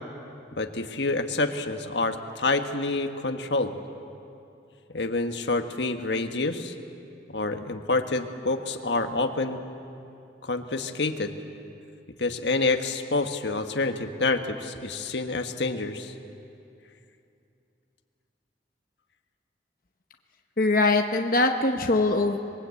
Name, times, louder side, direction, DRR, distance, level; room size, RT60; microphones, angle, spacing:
voice 1, 0.6-3.7 4.9-6.7 7.3-9.6 10.4-11.3 12.2-16.1, left 3 dB, 80° left, 6 dB, 1.5 m, -27 dB
voice 2, 20.6-22.4, left 2 dB, 50° left, 4 dB, 1.0 m, -22 dB
26.5 x 21.5 x 8.4 m, 2.7 s
head